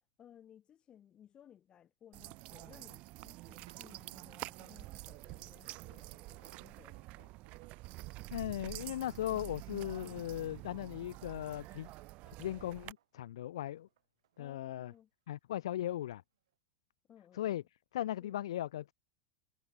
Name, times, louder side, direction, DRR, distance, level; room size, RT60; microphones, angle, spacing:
voice 1, 0.2-7.3 14.4-15.1 17.1-17.6 18.2-18.4, left 9 dB, 30° left, 7.7 m, -60 dB
sound 1, 2.1-12.9, right 21 dB, 50° right, 1.9 m, -48 dB
sound 2, 2.6-12.0 12.3-13.3 13.7-15.0 15.8-16.1 16.5-16.6, right 12 dB, 70° right, 7.7 m, -67 dB
voice 2, 8.3-11.9 12.3-13.9 14.4-14.9 15.3-16.2 17.3-17.6 17.9-18.9, left 12 dB, 70° left, 0.4 m, -38 dB
hypercardioid pair, 95°, 3 cm